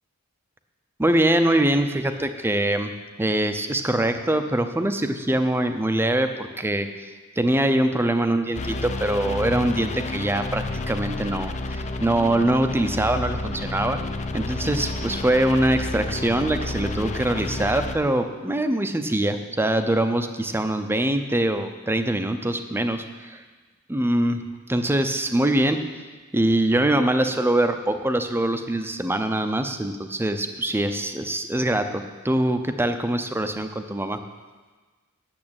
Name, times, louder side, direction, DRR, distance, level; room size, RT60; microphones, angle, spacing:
voice 1, 1.0-2.9 3.2-6.9 7.4-14.0 14.3-23.4 23.9-24.4 24.7-25.9 26.3-34.2, right 1 dB, 10° right, 7 dB, 0.6 m, -23 dB
sound 1, 8.5-17.9, left 2 dB, 30° left, 0.6 m, -30 dB
8.7 x 7.2 x 8.7 m, 1.3 s
head